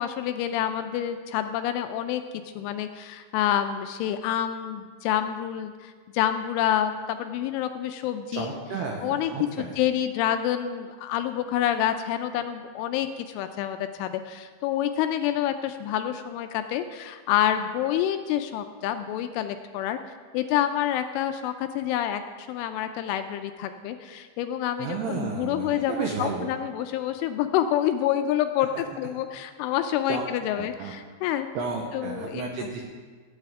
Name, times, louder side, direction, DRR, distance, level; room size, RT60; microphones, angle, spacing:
voice 1, 0.0-2.2 2.6-8.5 9.0-9.3 9.6-20.0 20.3-31.5 31.9-32.7, left 11 dB, 85° left, 8 dB, 2.9 m, -28 dB
voice 2, 8.3-9.7 24.8-26.5 30.1-30.2 30.6-30.9 31.6-32.8, right 5 dB, 80° right, 0 dB, 2.4 m, -32 dB
18.0 x 9.1 x 3.6 m, 1.5 s
omnidirectional pair, 5.8 m